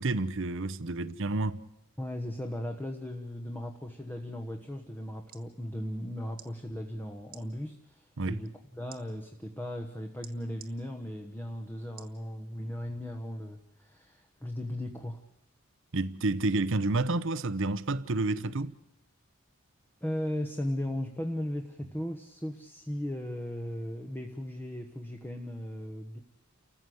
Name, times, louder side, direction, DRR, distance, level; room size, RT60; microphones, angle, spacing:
voice 1, 0.0-1.6 8.2-8.4 15.9-18.7, right 2 dB, 60° right, 0.8 m, -29 dB
voice 2, 2.0-15.2 20.0-26.2, left 1 dB, 10° left, 1.2 m, -37 dB
sound 1, 5.3-5.5 6.3-6.5 7.3-7.4 8.9-9.0 10.2-10.7 12.0-12.2 12.8-12.9, right 10 dB, 40° right, 1.6 m, -50 dB
30.0 x 15.0 x 7.9 m
head